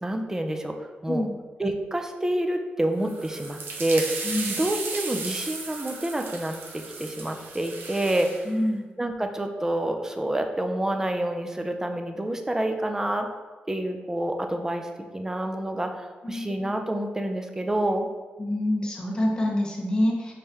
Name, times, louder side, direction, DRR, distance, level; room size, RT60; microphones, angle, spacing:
voice 1, 0.0-1.3 1.6-4.2 4.5-8.4 9.0-13.3 13.7-18.1, right 1 dB, 15° right, 5 dB, 0.5 m, -28 dB
sound 1, 3.0-8.4, right 4 dB, 85° right, 0.7 m, -35 dB
voice 2, 4.2-4.5 8.4-8.8 16.2-16.5 18.4-20.3, left 1 dB, 20° left, -2 dB, 1.1 m, -26 dB
5.3 x 3.3 x 2.9 m, 1.3 s
cardioid pair, 75°, 4 cm